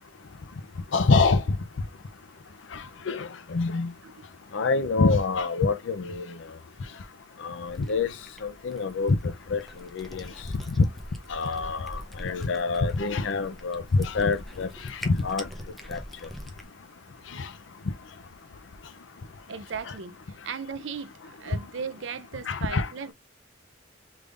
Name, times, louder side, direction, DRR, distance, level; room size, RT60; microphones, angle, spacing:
voice 1, 0.9-1.4 2.7-3.9 4.5-6.2 7.4-8.1 8.4-9.2 9.5-9.6 9.9-10.3 10.8-10.9 11.3-14.7 15.0-15.5 15.9-16.0 17.4-17.5 22.5-22.9, left 4 dB, 70° left, 0.5 m, -25 dB
Cat, 7.7-16.7, equal, ahead, 0.7 m, -44 dB
voice 2, 19.5-20.2 20.4-23.1, right 6 dB, 70° right, 0.6 m, -36 dB
3.5 x 3.4 x 2.4 m
head